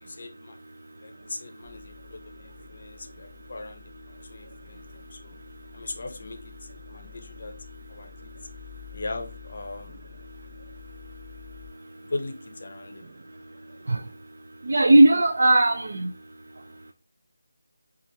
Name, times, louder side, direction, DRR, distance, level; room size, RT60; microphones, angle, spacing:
voice 1, 0.0-0.6 1.0-5.4 5.7-7.5 7.9-8.4 8.9-10.1 12.0-13.1, left 2 dB, 50° left, 0.6 m, -39 dB
sound 1, 1.6-11.7, left 12 dB, 15° right, 1.6 m, -49 dB
voice 2, 14.6-16.1, right 1 dB, 60° right, 0.4 m, -17 dB
4.4 x 2.4 x 2.7 m
figure-of-eight pair, 165°, 0 cm